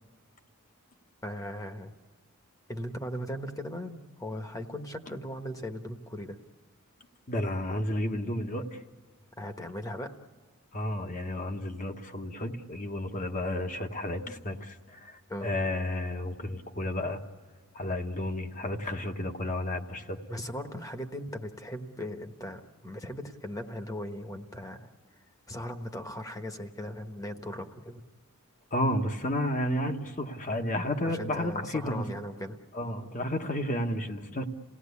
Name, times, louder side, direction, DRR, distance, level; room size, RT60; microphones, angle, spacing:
voice 1, 1.2-1.9 2.7-6.4 9.4-10.1 15.3-15.5 20.3-24.9 25.5-28.0 31.0-32.6, equal, 15° left, 6 dB, 1.2 m, -38 dB
voice 2, 7.3-8.8 10.7-17.2 17.7-20.2 28.7-32.0 32.7-34.5, left 1 dB, 35° left, 5 dB, 1.3 m, -32 dB
28.0 x 17.5 x 8.4 m, 1.5 s
head